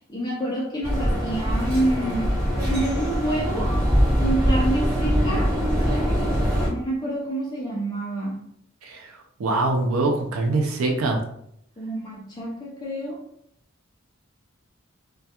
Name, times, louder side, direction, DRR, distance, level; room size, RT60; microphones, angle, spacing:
voice 1, 0.1-2.3 2.6-3.8 4.2-5.6 6.7-8.4 11.8-13.2, right 1 dB, 20° left, -5 dB, 0.4 m, -27 dB
sound 1, 0.8-6.7, equal, 20° right, 1.3 m, -22 dB
voice 2, 9.4-11.2, right 2 dB, 85° right, 3 dB, 0.4 m, -23 dB
2.2 x 2.2 x 2.8 m, 0.72 s
head